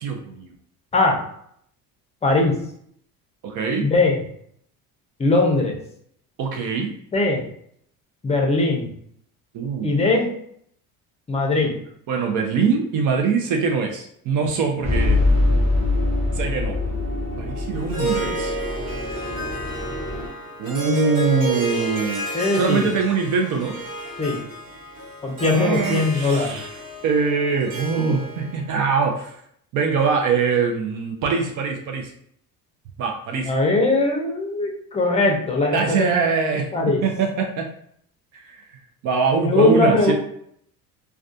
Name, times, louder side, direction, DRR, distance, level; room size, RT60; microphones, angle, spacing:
voice 1, 0.0-0.5 3.4-3.9 6.4-6.9 9.5-10.0 12.1-15.2 16.3-16.8 17.4-18.6 20.6-22.2 22.5-23.8 25.4-26.7 27.0-29.4 29.7-32.1 33.0-33.5 35.7-36.7 37.0-37.7 38.3-38.6 39.0-40.1, right 5 dB, 55° right, 3 dB, 0.5 m, -23 dB
voice 2, 2.2-2.5 3.8-4.2 5.2-5.7 7.1-7.4 8.2-8.9 9.8-10.3 11.3-11.7 22.3-22.9 24.2-24.4 25.2-26.6 33.4-36.1 36.7-37.0 39.4-40.1, left 2 dB, 15° left, 1 dB, 0.5 m, -20 dB
sound 1, 14.8-20.3, left 2 dB, 15° right, 0.8 m, -23 dB
Harp, 17.7-28.7, right 1 dB, 75° right, 1.3 m, -31 dB
2.3 x 2.2 x 2.6 m, 0.67 s
cardioid pair, 110°, 38 cm